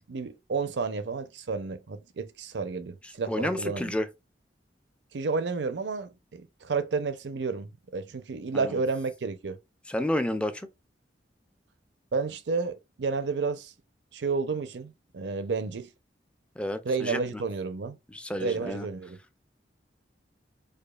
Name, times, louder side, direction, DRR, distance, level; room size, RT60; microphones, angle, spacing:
voice 1, 0.1-3.9 5.1-9.6 12.1-13.7 14.1-15.9 16.8-18.0 18.4-19.2, right 4 dB, 80° right, 0.5 m, -31 dB
voice 2, 3.0-4.1 8.5-8.8 9.9-10.7 16.6-17.2 18.1-18.9, left 1 dB, 5° left, 0.3 m, -31 dB
5.0 x 2.2 x 2.3 m
head